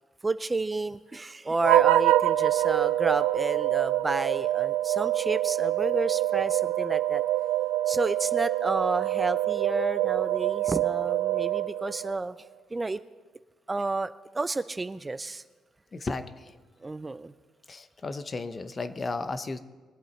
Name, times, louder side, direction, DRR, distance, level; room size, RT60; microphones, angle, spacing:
voice 1, 0.2-7.2 7.9-12.3 12.7-13.0 13.7-15.4 16.8-17.3, right 3 dB, 20° right, 13 dB, 0.4 m, -30 dB
sound 1, 1.6-12.2, right 14 dB, 90° right, 0.4 m, -25 dB
voice 2, 15.9-16.6 17.7-19.6, left 3 dB, 35° left, 12 dB, 0.9 m, -34 dB
22.5 x 8.0 x 4.3 m, 1.3 s
supercardioid pair, 75°, 0 cm